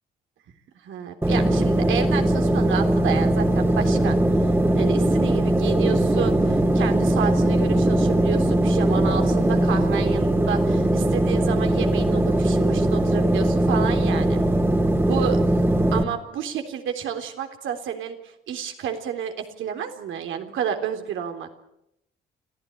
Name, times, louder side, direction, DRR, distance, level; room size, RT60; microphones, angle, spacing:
voice 1, 0.8-4.2 4.8-14.4 15.1-15.4 15.9-18.2 18.5-21.5, right 8 dB, 80° right, 6 dB, 3.6 m, -30 dB
sound 1, 1.2-16.0, right 1 dB, 10° right, 2.4 m, -20 dB
25.5 x 15.5 x 9.9 m, 0.83 s
cardioid pair, 90°, 20 cm